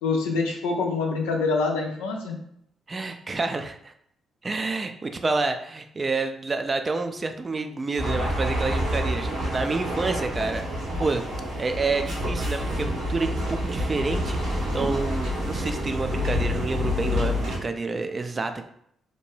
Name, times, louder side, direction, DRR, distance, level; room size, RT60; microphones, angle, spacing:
voice 1, 0.0-2.4, left 4 dB, 85° left, 1 dB, 0.4 m, -25 dB
voice 2, 2.9-3.9 4.4-11.2 11.6-18.7, right 3 dB, 35° right, 7 dB, 0.4 m, -29 dB
sound 1, 8.0-17.6, equal, 80° right, 0.9 m, -28 dB
2.7 x 2.1 x 3.2 m, 0.70 s
hypercardioid pair, 50°, 0 cm